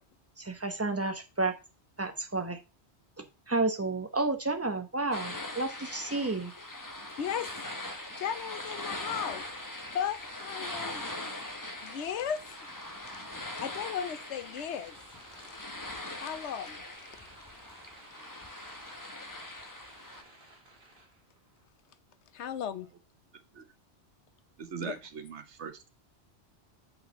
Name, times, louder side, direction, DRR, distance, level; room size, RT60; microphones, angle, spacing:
voice 1, 0.4-1.5 2.0-2.6 3.2-6.5, right 3 dB, 15° right, 0.9 m, -31 dB
sound 1, 5.1-20.2, left 1 dB, 20° left, 0.9 m, -41 dB
sound 2, 7.0-21.7, right 1 dB, 50° right, 2.3 m, -55 dB
voice 2, 7.2-7.6 8.2-9.4 9.9-11.0 11.8-12.6 13.1-13.2 13.6-15.0 15.4-15.7 16.1-16.8 22.3-22.9 24.8-24.9, left 8 dB, 80° left, 1.0 m, -36 dB
voice 3, 24.6-25.9, right 7 dB, 85° right, 1.3 m, -41 dB
5.5 x 4.2 x 5.8 m
omnidirectional pair, 1.1 m